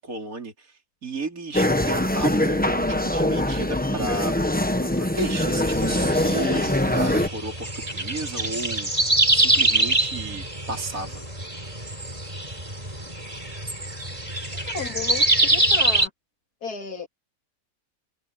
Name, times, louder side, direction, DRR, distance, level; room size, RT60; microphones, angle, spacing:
voice 1, 0.0-4.3 4.8-8.9 9.3-11.2, right 3 dB, 60° right, 4.0 m, -33 dB
sound 1, 1.5-7.3, left 1 dB, 5° left, 0.9 m, -23 dB
sound 2, 5.7-16.1, right 1 dB, 20° right, 5.1 m, -24 dB
voice 2, 14.7-16.1 16.6-17.1, left 5 dB, 75° left, 2.9 m, -33 dB
omnidirectional pair, 1.7 m